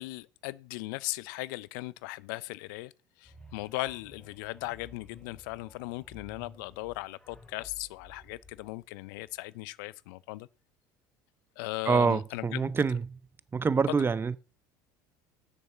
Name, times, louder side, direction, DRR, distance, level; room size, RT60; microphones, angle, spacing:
voice 1, 0.0-2.9 3.2-10.5 11.6-12.7 13.9-14.0, left 20 dB, 80° left, 0.5 m, -38 dB
sound 1, 3.2-9.5, left 2 dB, 10° left, 2.6 m, -54 dB
voice 2, 11.9-13.2 13.5-14.4, right 5 dB, 20° right, 0.6 m, -26 dB
7.2 x 6.5 x 7.0 m
supercardioid pair, 95°, 10 cm